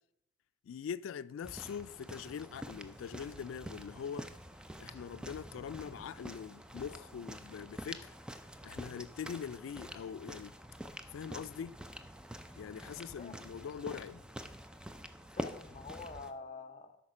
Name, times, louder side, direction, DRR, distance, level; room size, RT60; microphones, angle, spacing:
voice 1, 0.6-4.3 4.8-8.1 8.6-10.5 11.1-11.8 12.5-14.3, left 7 dB, 90° left, 0.3 m, -43 dB
sound 1, 1.4-16.3, equal, 5° right, 0.4 m, -47 dB
voice 2, 12.9-13.5 15.3-17.0, left 4 dB, 35° left, 0.8 m, -47 dB
8.5 x 5.7 x 4.9 m
head